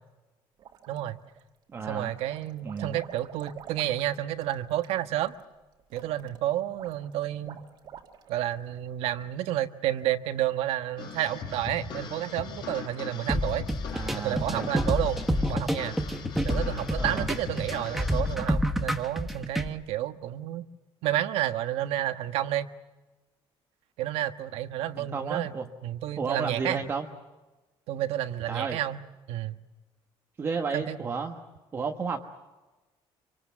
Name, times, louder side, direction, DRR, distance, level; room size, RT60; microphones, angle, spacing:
sound 1, 0.6-1.4 1.8-8.5, right 9 dB, 50° right, 2.1 m, -48 dB
voice 1, 0.9-1.2 1.9-5.3 5.9-7.6 8.3-13.7 14.2-16.0 16.4-20.7 21.0-22.7 24.0-25.5 25.8-26.8 27.9-29.0 29.3-29.6 30.7-31.0, right 13 dB, 85° right, 9 dB, 1.3 m, -30 dB
voice 2, 1.7-2.1 2.6-3.0 13.9-14.7 17.0-17.3 25.0-25.7 26.2-27.1 28.5-28.8 30.4-31.4 31.7-32.2, right 5 dB, 25° right, 2 dB, 1.3 m, -32 dB
sound 2, 11.0-18.3, left 6 dB, 50° left, 5.5 m, -39 dB
sound 3, 13.3-19.7, equal, ahead, 1.2 m, -28 dB
26.5 x 24.5 x 7.3 m, 1.2 s
cardioid pair, 180°, 10 cm